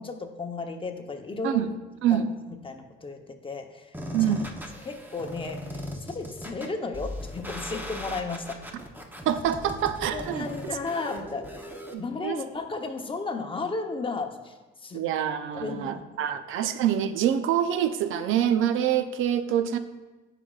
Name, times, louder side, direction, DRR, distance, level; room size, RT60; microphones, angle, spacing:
voice 1, 0.0-1.6 2.1-3.9 4.2-4.3 4.8-8.6 10.1-11.5 12.0-14.5 14.8-15.0 15.5-16.0, left 3 dB, 25° left, 4 dB, 0.8 m, -34 dB
sound 1, 3.9-11.9, equal, 10° right, 0.8 m, -38 dB
voice 2, 4.1-4.5 9.3-10.8 11.9-12.4 14.9-19.8, right 10 dB, 85° right, 10 dB, 0.5 m, -26 dB
11.0 x 5.0 x 2.4 m, 1.2 s
cardioid pair, 90°, 20 cm